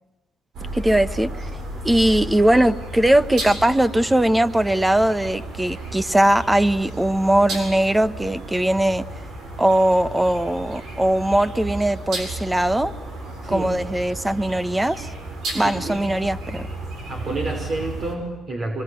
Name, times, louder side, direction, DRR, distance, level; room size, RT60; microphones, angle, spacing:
sound 1, 0.5-18.1, right 2 dB, 75° right, 7.5 m, -33 dB
voice 1, 0.7-1.5 1.8-9.0 9.6-12.9 13.5-15.1 15.5-16.7, right 1 dB, 10° right, 13 dB, 1.3 m, -20 dB
voice 2, 13.4-13.8 15.6-16.1 17.1-18.8, right 2 dB, 50° right, 3 dB, 5.4 m, -29 dB
25.5 x 25.0 x 9.4 m, 1.1 s
cardioid pair, 90°, 0 cm